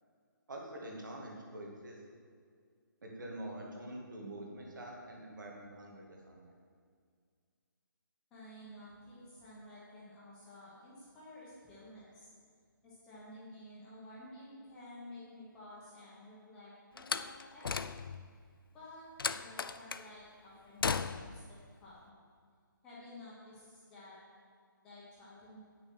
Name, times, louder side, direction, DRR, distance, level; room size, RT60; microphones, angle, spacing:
voice 1, 0.5-2.0 3.0-6.5, right 1 dB, 60° right, -1 dB, 2.3 m, -46 dB
voice 2, 8.3-12.3 12.8-17.9 18.7-19.1 19.4-22.1 22.8-24.2 24.8-25.6, left 1 dB, 5° left, -8 dB, 1.0 m, -52 dB
Slam, 17.0-18.3 19.2-20.1 20.8-21.4, left 5 dB, 85° left, 0.4 m, -36 dB
8.9 x 6.6 x 6.1 m, 2.1 s
hypercardioid pair, 175°, 11 cm